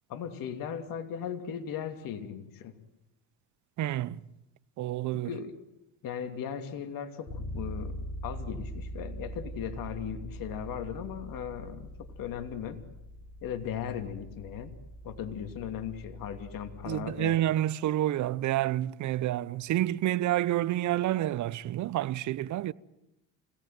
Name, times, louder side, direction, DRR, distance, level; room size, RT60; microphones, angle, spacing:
voice 1, 0.1-2.8 5.1-5.6 6.0-12.8 13.4-14.8 15.0-17.4, left 8 dB, 60° left, 2.7 m, -37 dB
voice 2, 3.8-4.2 4.8-5.3 16.8-22.7, right 13 dB, 50° right, 0.8 m, -29 dB
Bass guitar, 7.3-17.1, equal, 35° left, 4.6 m, -42 dB
26.0 x 17.5 x 9.3 m
supercardioid pair, 85°, 39 cm